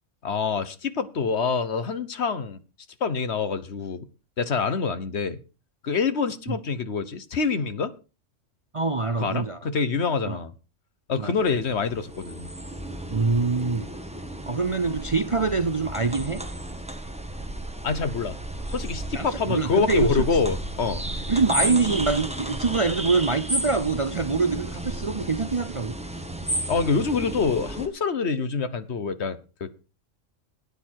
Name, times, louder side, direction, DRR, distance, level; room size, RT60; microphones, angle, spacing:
voice 1, 0.2-2.6 3.0-4.1 4.4-5.4 5.8-7.9 9.2-10.5 11.1-12.5 17.8-18.4 18.7-21.0 26.7-29.7, left 5 dB, 60° left, 1.3 m, -26 dB
voice 2, 8.7-9.6 10.3-10.4 11.2-11.3 13.1-13.9 14.5-16.4 19.1-20.2 21.3-25.9, right 4 dB, 35° right, 0.5 m, -24 dB
sound 1, 11.4-27.9, right 1 dB, 5° right, 1.3 m, -33 dB
16.0 x 9.7 x 4.6 m
omnidirectional pair, 1.3 m